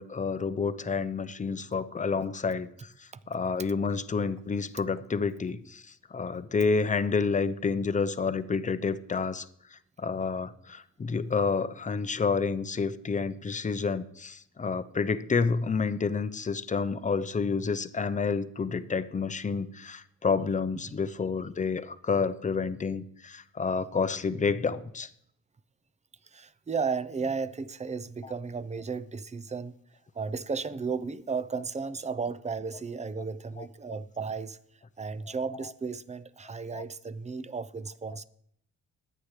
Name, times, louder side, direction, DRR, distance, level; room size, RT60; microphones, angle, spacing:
voice 1, 0.0-9.5 9.7-25.1 27.2-27.3 33.6-33.7 35.5-35.7 36.7-36.8 38.1-38.2, left 5 dB, 25° left, 0.7 m, -29 dB
voice 2, 26.2-29.7 30.1-34.6 35.0-38.2, right 5 dB, 25° right, 0.6 m, -34 dB
21.0 x 8.8 x 3.3 m
cardioid pair, 90°, 30 cm